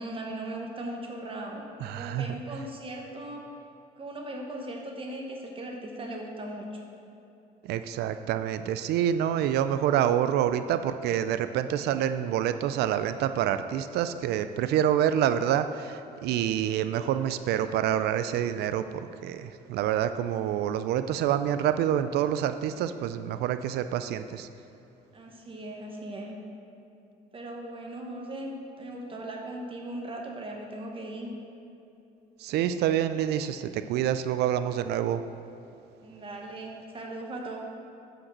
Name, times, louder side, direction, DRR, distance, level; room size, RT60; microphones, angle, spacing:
voice 1, 0.0-3.4 4.0-6.7 25.1-26.4 27.3-31.3 36.0-37.7, right 1 dB, 30° right, 1 dB, 1.1 m, -38 dB
voice 2, 1.8-2.4 7.6-24.5 32.4-35.2, right 10 dB, 75° right, 11 dB, 0.4 m, -27 dB
8.7 x 5.2 x 6.1 m, 2.8 s
cardioid pair, 110°, 17 cm